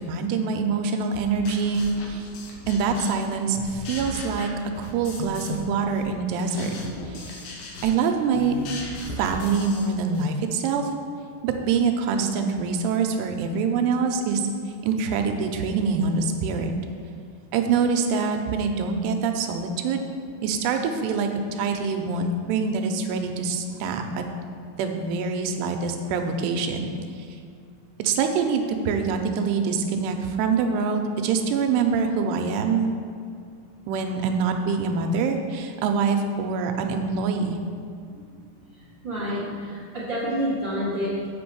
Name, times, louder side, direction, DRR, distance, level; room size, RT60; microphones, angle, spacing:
voice 1, 0.0-2.3 2.7-4.5 4.8-6.7 7.1-7.4 7.8-8.5 9.2-10.9 11.4-14.4 14.8-16.7 17.5-20.1 20.4-24.2 24.8-26.9 28.0-32.9 33.9-37.6, right 5 dB, 80° right, 5 dB, 2.7 m, -25 dB
sound 1, 1.1-3.3 3.5-5.7 5.9-10.3, left 2 dB, 70° left, 2.4 m, -37 dB
voice 2, 38.7-41.3, equal, 55° right, -9 dB, 1.3 m, -29 dB
7.8 x 5.7 x 6.8 m, 2.3 s
omnidirectional pair, 5.0 m